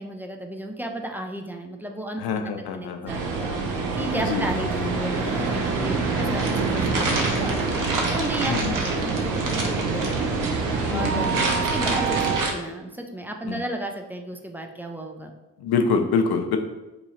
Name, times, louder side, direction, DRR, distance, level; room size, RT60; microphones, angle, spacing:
voice 1, 0.0-3.5 4.0-7.8 8.1-10.4 10.9-15.3, right 1 dB, 5° right, 3 dB, 0.3 m, -34 dB
voice 2, 2.2-3.2 4.3-4.4 8.5-8.8 10.9-11.4 13.5-13.6 15.6-16.6, left 5 dB, 55° left, 5 dB, 0.6 m, -25 dB
sound 1, 3.1-12.4, right 4 dB, 70° right, 0.7 m, -26 dB
sound 2, 6.4-12.5, right 2 dB, 45° right, 0.9 m, -30 dB
3.0 x 2.3 x 4.1 m, 1.1 s
hypercardioid pair, 40°, 46 cm